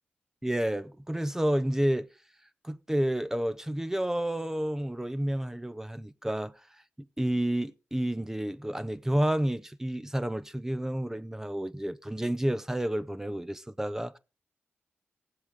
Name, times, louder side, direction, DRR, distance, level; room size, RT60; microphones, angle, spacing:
voice 1, 0.4-2.1 2.6-6.5 7.2-14.2, right 1 dB, 10° right, 0.7 m, -30 dB
18.0 x 7.7 x 3.7 m
cardioid pair, 60°, 4 cm